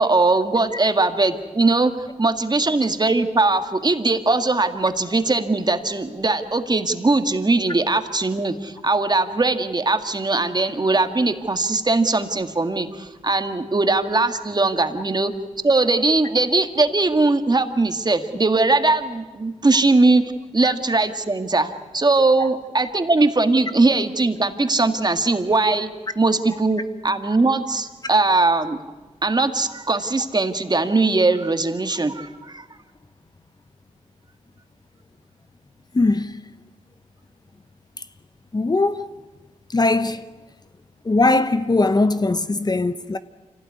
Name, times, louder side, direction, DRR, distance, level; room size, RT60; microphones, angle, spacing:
voice 1, 0.0-1.9 2.2-15.3 15.6-25.9 26.2-28.8 29.2-32.6, right 3 dB, 35° right, 2.0 m, -20 dB
voice 2, 35.9-36.4 38.5-39.1 39.7-40.2 41.0-43.2, left 2 dB, 30° left, 1.0 m, -20 dB
25.5 x 17.5 x 9.7 m
cardioid pair, 60°, 13 cm